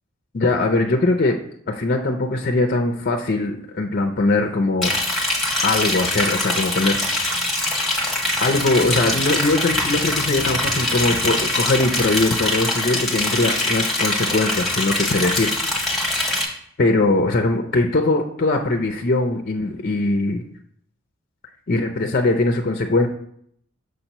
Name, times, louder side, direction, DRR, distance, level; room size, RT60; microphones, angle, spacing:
voice 1, 0.3-1.4 1.7-5.0 5.6-7.0 7.3-7.7 8.4-16.2 16.8-20.4 21.7-23.1, left 2 dB, 45° left, 4 dB, 0.5 m, -21 dB
Liquid, 4.8-16.4, left 1 dB, ahead, 1.2 m, -23 dB
6.4 x 3.0 x 5.4 m, 0.66 s
head